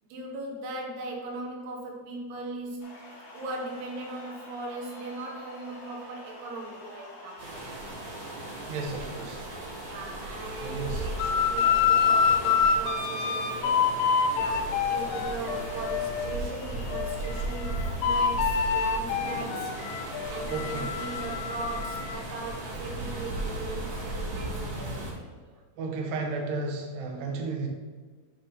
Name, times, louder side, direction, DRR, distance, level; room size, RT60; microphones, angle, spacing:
voice 1, 0.1-3.0 3.3-7.5 9.8-19.8 20.3-25.5, right 2 dB, 90° right, 0 dB, 3.3 m, -39 dB
sound 1, 2.8-20.4, left 1 dB, 45° left, 2.0 m, -47 dB
sound 2, 7.4-25.1, right 2 dB, 50° right, 2.3 m, -36 dB
voice 2, 8.7-9.4 10.6-11.0 20.5-20.9 25.8-27.7, right 3 dB, 75° right, 1 dB, 1.7 m, -33 dB
sound 3, 11.2-16.5 16.9-22.2, left 6 dB, 80° left, 2.3 m, -27 dB
8.9 x 4.0 x 4.1 m, 1.5 s
omnidirectional pair, 4.6 m